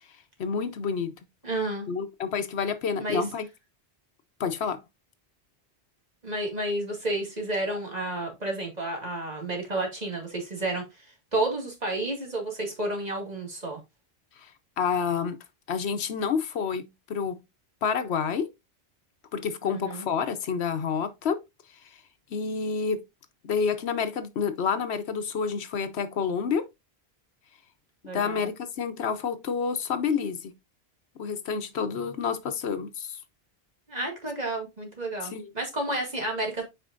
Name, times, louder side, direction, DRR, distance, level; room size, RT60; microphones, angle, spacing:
voice 1, 0.4-1.2 1.9-3.5 4.4-4.8 14.4-14.5 14.8-15.4 15.7-17.4 17.8-18.5 19.3-21.4 22.3-23.0 23.4-26.6 28.1-30.5 31.2-33.2 35.2-35.5, left 6 dB, 80° left, 1.1 m, -29 dB
voice 2, 1.4-1.9 3.0-3.2 6.2-13.8 19.6-20.1 28.0-28.5 33.9-36.6, right 2 dB, 40° right, 2.2 m, -31 dB
8.1 x 5.0 x 2.5 m
omnidirectional pair, 1.1 m